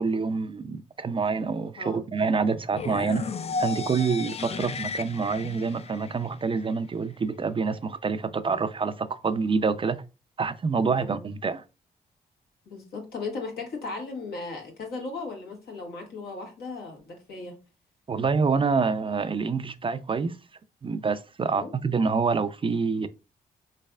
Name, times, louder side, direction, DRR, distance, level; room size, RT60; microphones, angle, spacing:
voice 1, 0.0-3.3 3.6-10.0 10.4-11.6 18.1-20.4 20.8-23.1, right 5 dB, 35° right, 0.4 m, -27 dB
sound 1, 2.7-6.7, left 4 dB, 40° left, 0.4 m, -34 dB
voice 2, 4.2-4.6 10.9-11.3 12.6-17.5 21.4-21.7, left 3 dB, 75° left, 1.5 m, -37 dB
4.0 x 3.2 x 2.3 m
supercardioid pair, 60°, 16 cm